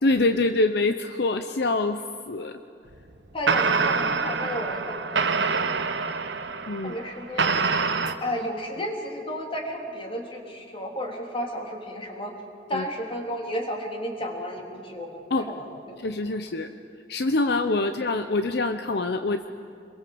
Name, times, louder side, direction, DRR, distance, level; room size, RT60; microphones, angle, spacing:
voice 1, 0.0-2.6 6.7-7.0 12.7-12.8 15.3-15.5 16.0-16.7 17.1-19.5, left 2 dB, 65° left, 8 dB, 0.8 m, -25 dB
sound 1, 2.9-3.1 3.5-8.1, right 4 dB, 75° right, 1.2 m, -25 dB
voice 2, 3.3-5.7 6.8-7.6 8.2-12.3 12.7-16.0 17.8-17.9, equal, 30° left, 1 dB, 3.4 m, -33 dB
27.0 x 22.0 x 7.9 m, 2.5 s
head